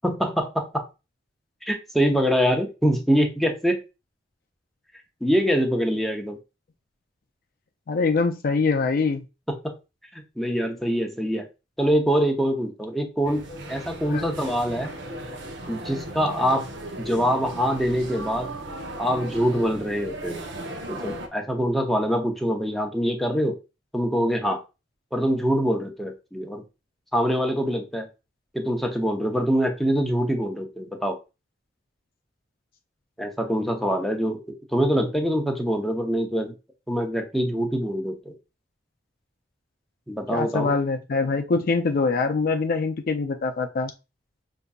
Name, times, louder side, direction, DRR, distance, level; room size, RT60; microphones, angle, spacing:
voice 1, 0.0-0.8 1.6-3.8 5.2-6.4 9.5-9.8 10.1-11.5 11.8-14.9 15.7-16.6 17.0-18.5 19.0-20.4 20.9-23.6 23.9-24.6 25.1-26.6 27.1-28.1 28.5-31.2 33.2-34.4 34.7-36.5 36.9-38.3 40.1-40.7, equal, ahead, 3 dB, 0.6 m, -24 dB
voice 2, 7.9-9.2 14.1-14.3 40.3-43.9, left 4 dB, 55° left, 5 dB, 0.4 m, -24 dB
sound 1, 13.2-21.3, right 1 dB, 75° right, 0.8 m, -36 dB
5.1 x 2.6 x 2.2 m, 0.28 s
head